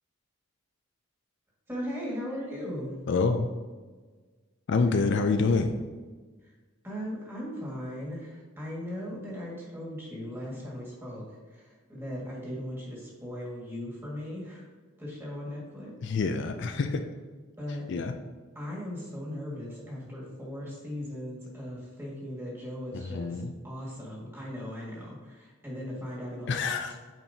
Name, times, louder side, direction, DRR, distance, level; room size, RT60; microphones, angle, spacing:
voice 1, 1.7-2.9 6.4-6.5 6.8-14.6 15.0-15.9 17.6-17.8 18.6-26.7, equal, 10° right, -5 dB, 1.9 m, -38 dB
voice 2, 3.1-3.5 4.7-5.7 16.0-17.0 17.9-18.2 22.9-23.5 26.5-26.9, left 4 dB, 60° left, 7 dB, 0.4 m, -27 dB
8.7 x 4.5 x 2.8 m, 1.4 s
head